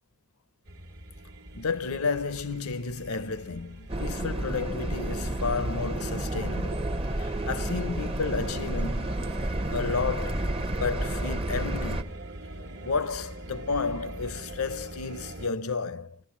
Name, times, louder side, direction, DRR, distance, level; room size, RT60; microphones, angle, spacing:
sound 1, 0.7-15.5, right 1 dB, 50° right, 1.2 m, -44 dB
voice 1, 1.5-6.9 7.2-9.2 9.7-12.1 12.8-16.2, left 4 dB, 75° left, 0.8 m, -32 dB
sound 2, 3.9-12.0, right 1 dB, 25° right, 0.8 m, -30 dB
21.5 x 17.5 x 7.3 m
head